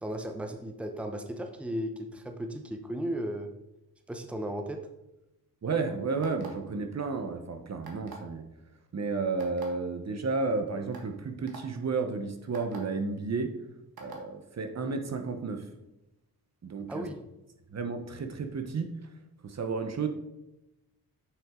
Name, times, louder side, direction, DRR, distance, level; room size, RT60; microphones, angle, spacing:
voice 1, 0.0-3.5 4.1-4.9 16.9-17.2, right 1 dB, 5° right, 5 dB, 0.8 m, -35 dB
voice 2, 5.6-8.4 8.9-13.6 14.0-15.7 16.6-17.1 17.7-18.9 19.4-20.1, right 4 dB, 45° right, 6 dB, 0.9 m, -32 dB
sound 1, 6.2-6.7 7.8-8.3 9.4-9.7 10.4-10.5 10.9-11.1 11.5-11.6 12.5-12.8 14.0-14.2, right 5 dB, 70° right, 1.8 m, -45 dB
7.8 x 6.2 x 3.7 m, 0.92 s
cardioid pair, 90°, 38 cm